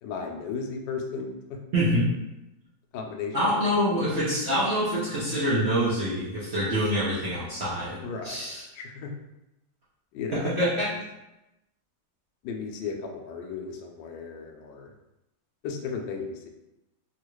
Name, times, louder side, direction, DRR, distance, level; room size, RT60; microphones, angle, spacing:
voice 1, 0.0-1.6 2.9-3.6 8.0-8.4 8.7-9.1 10.1-10.5 12.4-14.9 15.6-16.5, left 5 dB, 75° left, 3 dB, 1.1 m, -35 dB
voice 2, 1.7-2.1 3.3-8.0 8.2-8.6 10.3-10.9, equal, 80° right, -9 dB, 0.6 m, -25 dB
3.5 x 2.4 x 3.0 m, 0.95 s
omnidirectional pair, 2.2 m